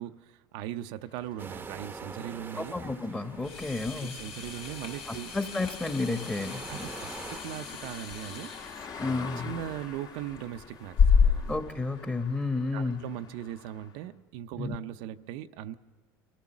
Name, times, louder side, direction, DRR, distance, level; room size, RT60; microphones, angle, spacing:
voice 1, 0.0-2.8 3.9-5.3 6.7-8.9 9.4-11.5 12.7-15.7, right 12 dB, 75° right, 9 dB, 0.6 m, -39 dB
sound 1, 1.1-14.1, left 5 dB, 45° left, 1.6 m, -47 dB
sound 2, 1.4-7.4, right 4 dB, 20° right, 0.8 m, -45 dB
voice 2, 2.6-4.1 5.1-6.9 9.0-9.5 11.5-13.0 14.6-14.7, left 3 dB, 10° left, 8 dB, 1.3 m, -32 dB
sound 3, 3.4-11.6, left 6 dB, 75° left, 3.5 m, -30 dB
24.5 x 14.5 x 7.2 m, 1.5 s
supercardioid pair, 100°, 10 cm